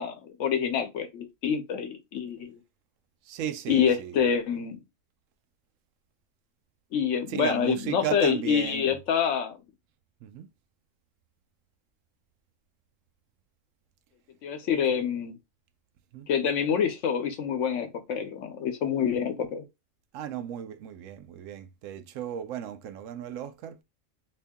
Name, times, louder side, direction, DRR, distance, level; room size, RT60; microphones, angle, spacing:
voice 1, 0.0-2.6 3.7-4.8 6.9-9.6 14.4-15.4 16.3-19.6, left 7 dB, 75° left, 1.1 m, -27 dB
voice 2, 3.3-4.2 7.3-8.9 10.2-10.5 16.1-16.3 20.1-23.8, right 10 dB, 80° right, 0.9 m, -35 dB
3.0 x 2.7 x 3.5 m
omnidirectional pair, 1.3 m